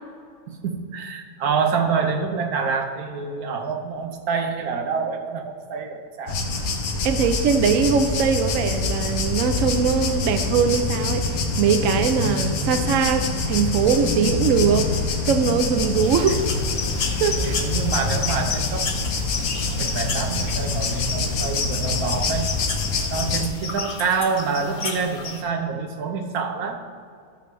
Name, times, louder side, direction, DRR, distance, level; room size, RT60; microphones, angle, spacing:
voice 1, 0.5-6.4 17.4-18.9 19.8-22.5 23.1-26.8, right 5 dB, 90° right, 4 dB, 1.4 m, -27 dB
sound 1, 6.3-23.5, left 3 dB, 80° left, 1.4 m, -25 dB
voice 2, 7.0-14.9 15.3-16.5 17.2-17.6, right 6 dB, 70° right, 8 dB, 0.9 m, -21 dB
sound 2, 16.0-25.4, left 4 dB, 40° left, 0.8 m, -32 dB
12.5 x 6.7 x 3.3 m, 2.3 s
omnidirectional pair, 1.5 m